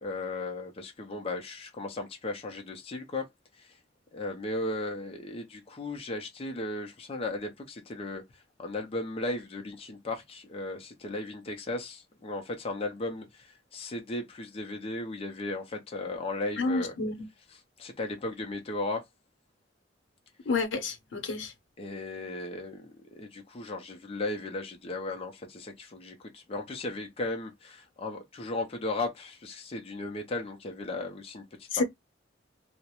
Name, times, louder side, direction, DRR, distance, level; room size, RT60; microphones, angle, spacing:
voice 1, 0.0-3.3 3.5-3.8 4.1-17.0 17.5-19.0 21.8-31.8, left 2 dB, 30° left, 0.4 m, -36 dB
voice 2, 16.6-17.1 20.5-21.5 31.7-31.8, left 3 dB, 80° left, 0.7 m, -29 dB
2.3 x 2.0 x 2.8 m
head